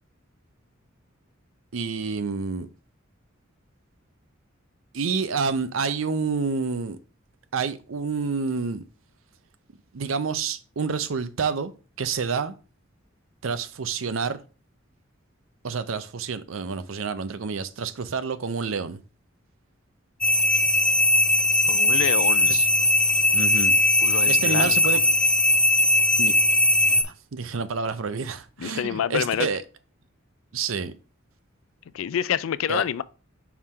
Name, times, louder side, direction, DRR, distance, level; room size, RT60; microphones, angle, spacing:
voice 1, 1.7-2.7 4.9-7.0 7.5-8.8 9.9-11.7 12.0-12.5 13.4-14.4 15.6-19.0 22.5-22.7 23.3-23.7 24.3-25.0 26.2-26.3 26.8-29.6 30.5-30.9 32.7-32.8, right 5 dB, 80° right, 0.6 m, -28 dB
sound 1, 20.2-27.0, left 2 dB, 5° left, 0.5 m, -19 dB
voice 2, 21.7-22.6 24.0-25.0 28.6-29.5 31.9-33.0, left 8 dB, 85° left, 0.4 m, -27 dB
4.7 x 3.7 x 5.4 m
head